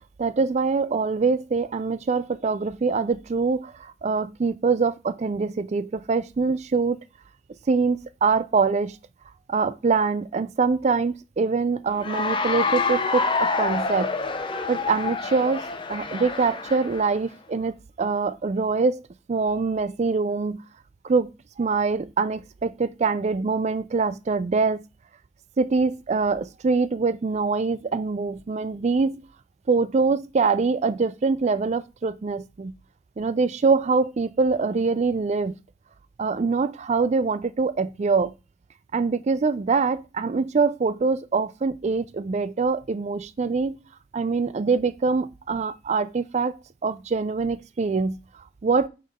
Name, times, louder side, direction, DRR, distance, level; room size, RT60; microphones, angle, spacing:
voice 1, 0.2-7.0 7.7-9.0 9.5-14.1 14.7-19.0 19.3-20.6 21.0-21.3 21.6-24.8 25.6-29.2 29.7-32.7 33.2-35.5 36.2-38.3 38.9-43.8 44.1-46.6 46.8-48.2 48.6-48.9, right 4 dB, 35° right, 0.4 m, -24 dB
Cheering / Applause, 12.0-17.1, left 4 dB, 25° left, 0.7 m, -27 dB
5.7 x 5.2 x 3.6 m
head